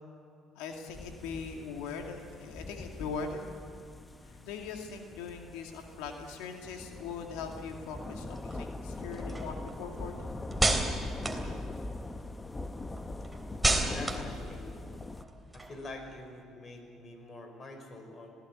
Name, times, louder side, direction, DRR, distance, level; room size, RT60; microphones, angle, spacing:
voice 1, 0.5-3.5 4.2-10.3, left 5 dB, 85° left, 3 dB, 2.3 m, -41 dB
sound 1, 0.9-15.2, left 2 dB, 20° left, 1.1 m, -42 dB
sound 2, 8.1-12.3 12.6-16.1, right 2 dB, 10° right, 3.3 m, -33 dB
voice 2, 13.8-14.7 15.5-18.4, left 2 dB, 40° left, 5 dB, 5.4 m, -45 dB
20.0 x 17.0 x 9.8 m, 2.6 s
supercardioid pair, 80°, 0 cm